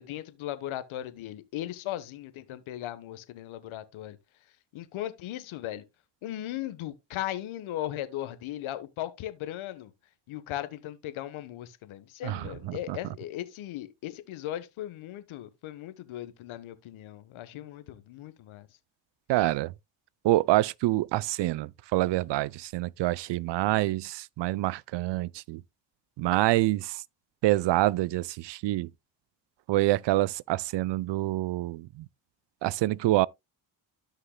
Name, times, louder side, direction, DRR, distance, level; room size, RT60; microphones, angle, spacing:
voice 1, 0.0-4.2 4.7-5.8 6.2-9.9 10.3-18.7 19.4-19.5, left 13 dB, 75° left, 1.3 m, -37 dB
voice 2, 12.2-13.0 19.3-19.7 20.2-25.6 26.2-27.0 27.4-28.9 29.7-32.0 32.6-33.3, right 17 dB, 60° right, 0.5 m, -26 dB
13.5 x 5.7 x 2.2 m
supercardioid pair, 70°, 48 cm